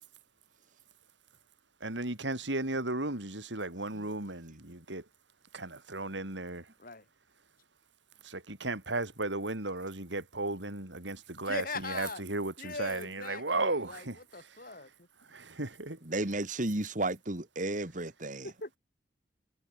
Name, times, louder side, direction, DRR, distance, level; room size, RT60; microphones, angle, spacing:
voice 1, 1.8-5.0 5.5-6.6 8.2-14.2 15.3-16.0, right 2 dB, 85° right, 4.6 m, -35 dB
voice 2, 11.4-12.2 12.6-14.1 14.3-14.9 18.4-18.8, left 4 dB, 50° left, 7.0 m, -40 dB
voice 3, 16.0-18.5, right 2 dB, 45° right, 2.4 m, -33 dB
head